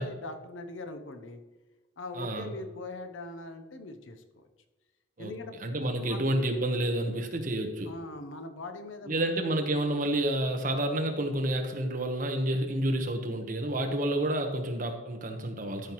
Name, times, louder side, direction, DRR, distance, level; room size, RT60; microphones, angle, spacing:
voice 1, 0.0-1.4 2.0-4.4 5.2-5.5 6.0-6.2 7.9-9.3, left 2 dB, 85° left, 7 dB, 0.8 m, -41 dB
voice 2, 2.1-2.5 5.2-5.3 5.6-7.9 9.1-15.9, right 1 dB, 45° right, 4 dB, 1.1 m, -29 dB
13.0 x 5.8 x 3.1 m, 1.2 s
head